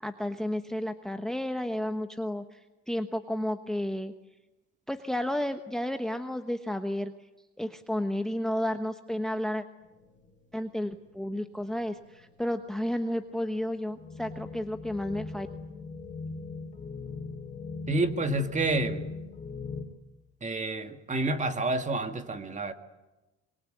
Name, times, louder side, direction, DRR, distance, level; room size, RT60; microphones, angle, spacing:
voice 1, 0.0-2.6 2.9-4.1 4.9-7.1 7.6-9.6 10.5-15.5, left 1 dB, ahead, 8 dB, 1.1 m, -32 dB
sound 1, 9.8-19.8, left 4 dB, 25° left, 3.9 m, -41 dB
voice 2, 17.9-19.1 20.4-22.7, right 2 dB, 25° right, 7 dB, 2.1 m, -29 dB
25.0 x 23.0 x 9.2 m, 1.0 s
cardioid pair, 110°, 30 cm